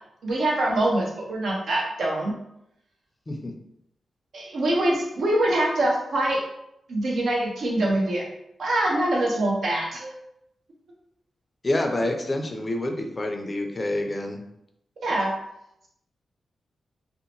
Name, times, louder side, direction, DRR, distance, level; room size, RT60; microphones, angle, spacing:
voice 1, 0.2-2.3 4.3-6.4 6.9-8.3 8.6-10.2 15.0-15.3, right 1 dB, 75° right, -2 dB, 0.7 m, -24 dB
voice 2, 11.6-14.4, left 1 dB, 35° left, 3 dB, 0.4 m, -27 dB
2.7 x 2.1 x 2.9 m, 0.81 s
cardioid pair, 65°, 0 cm